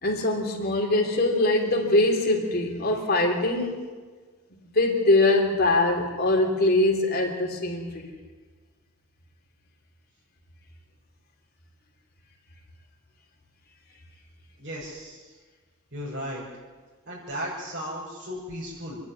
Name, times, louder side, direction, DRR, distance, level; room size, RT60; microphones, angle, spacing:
voice 1, 0.0-3.8 4.5-8.1, left 2 dB, 45° left, 1 dB, 3.4 m, -23 dB
voice 2, 14.6-15.4 15.9-16.4 17.1-19.0, equal, 50° right, -8 dB, 5.9 m, -35 dB
27.5 x 10.5 x 9.5 m, 1.4 s
head